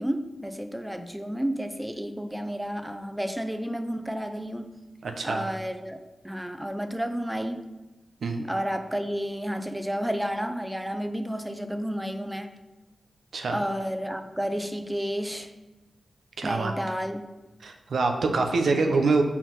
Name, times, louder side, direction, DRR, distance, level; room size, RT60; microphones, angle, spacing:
voice 1, 0.0-4.7 5.2-6.0 6.2-7.7 8.5-12.5 13.5-15.5 16.4-17.2 18.3-18.5, equal, 5° right, 0.6 m, -31 dB
voice 2, 5.0-5.5 8.2-8.5 13.3-13.6 16.4-16.7 17.6-19.2, right 3 dB, 85° right, 0.7 m, -25 dB
5.6 x 4.6 x 6.0 m
cardioid pair, 50°, 0 cm